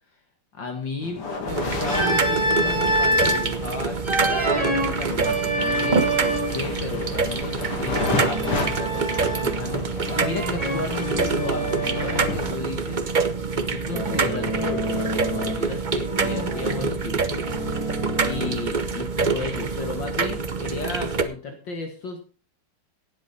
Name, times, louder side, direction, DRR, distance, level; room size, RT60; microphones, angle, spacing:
voice 1, 0.5-13.1 13.5-22.2, left 4 dB, 60° left, 3 dB, 2.3 m, -34 dB
sound 1, 1.0-12.5, left 3 dB, 90° left, 3.5 m, -33 dB
sound 2, 1.5-21.2, right 4 dB, 80° right, 0.4 m, -26 dB
Organ, 1.9-3.5 4.0-6.7 8.0-9.7 10.1-12.4 13.9-15.7 16.0-18.8, right 1 dB, 15° right, 2.2 m, -27 dB
17.5 x 7.8 x 4.2 m, 0.37 s
omnidirectional pair, 2.4 m